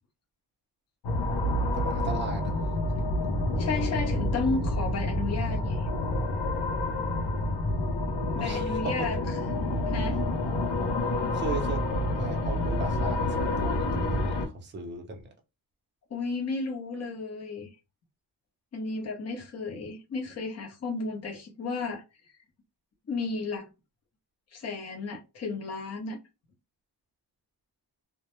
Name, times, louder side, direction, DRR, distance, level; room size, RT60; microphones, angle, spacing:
sound 1, 1.0-14.5, left 1 dB, 80° left, 0.7 m, -28 dB
voice 1, 1.7-2.5 8.4-9.1 11.3-11.8 12.1-15.3, right 3 dB, 25° right, 0.5 m, -36 dB
voice 2, 3.6-5.9 8.3-9.2 9.9-10.2 16.1-17.7 18.7-22.0 23.1-23.7 24.5-26.2, left 3 dB, 35° left, 0.7 m, -33 dB
2.2 x 2.0 x 3.0 m
wide cardioid pair, 150°, 42 cm